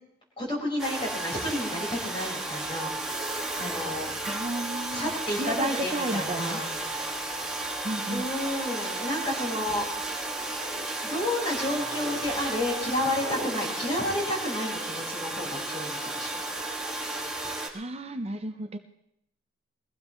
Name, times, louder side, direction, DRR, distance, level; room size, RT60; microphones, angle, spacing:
voice 1, 0.4-3.3 3.6-4.1 4.9-6.7 7.0-7.2 8.1-9.9 11.0-16.4, left 1 dB, 25° left, -4 dB, 5.0 m, -31 dB
Domestic sounds home sounds, 0.8-17.7, right 2 dB, 5° right, 1.8 m, -33 dB
voice 2, 4.2-6.6 7.8-8.3 17.7-18.8, right 2 dB, 30° right, 7 dB, 0.7 m, -33 dB
sound 1, 7.8-8.2 9.0-9.5 10.1-10.8 11.3-12.2 12.4-13.5, left 1 dB, 55° left, 5.4 m, -42 dB
22.5 x 15.5 x 3.1 m, 0.76 s
head